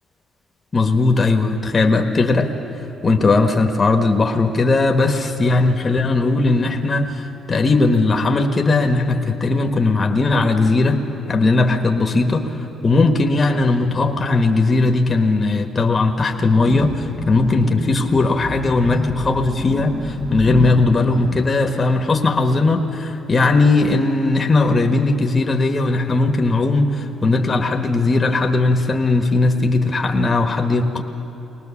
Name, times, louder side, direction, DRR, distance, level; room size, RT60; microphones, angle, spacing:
voice 1, 0.7-2.5 3.0-11.0 11.3-31.0, left 3 dB, 30° left, 4 dB, 1.4 m, -18 dB
sound 1, 16.4-21.5, left 1 dB, 5° left, 0.8 m, -29 dB
22.0 x 19.0 x 7.2 m, 2.9 s
cardioid pair, 90°, 0 cm